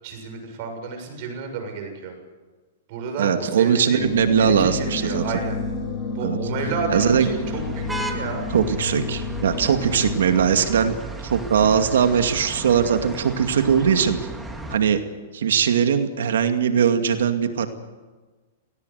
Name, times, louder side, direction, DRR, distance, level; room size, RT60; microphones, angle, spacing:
voice 1, 0.0-2.1 2.9-4.1 4.4-5.6 6.1-8.4, right 4 dB, 45° right, 4 dB, 7.1 m, -31 dB
voice 2, 3.2-5.2 6.2-6.4 6.9-7.3 8.5-14.2 14.7-15.0 15.3-17.7, right 7 dB, 85° right, 7 dB, 2.3 m, -20 dB
sound 1, 4.0-10.2, left 3 dB, 25° left, 3.3 m, -30 dB
sound 2, 6.9-14.8, right 2 dB, 5° right, 2.3 m, -35 dB
18.5 x 18.0 x 9.3 m, 1.3 s
hypercardioid pair, 150°, 0 cm